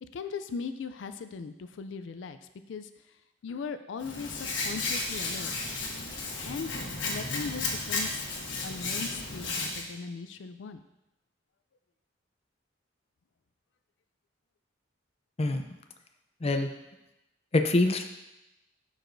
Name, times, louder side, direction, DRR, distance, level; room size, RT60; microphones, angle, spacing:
voice 1, 0.1-2.4 2.7-2.9 3.4-5.5 6.4-6.7 7.0-8.3 8.6-10.8, left 5 dB, 90° left, 10 dB, 0.4 m, -38 dB
Hands, 4.0-9.8, left 3 dB, 75° left, 1.4 m, -33 dB
voice 2, 17.5-18.0, left 2 dB, 35° left, 6 dB, 0.5 m, -25 dB
11.5 x 4.8 x 2.6 m, 0.94 s
head